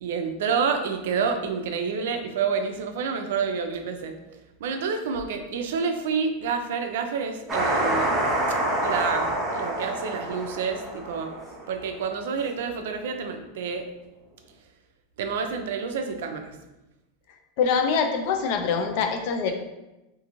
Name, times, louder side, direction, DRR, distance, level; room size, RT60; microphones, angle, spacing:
voice 1, 0.0-4.1 4.6-8.1 8.8-11.3 11.7-13.9 15.2-16.6 19.5-19.6, right 5 dB, 75° right, 6 dB, 0.4 m, -28 dB
sound 1, 7.5-11.8, right 1 dB, 20° right, 0.7 m, -27 dB
voice 2, 17.6-19.5, left 6 dB, 60° left, 5 dB, 0.4 m, -24 dB
2.5 x 2.4 x 2.9 m, 0.99 s
supercardioid pair, 125°, 0 cm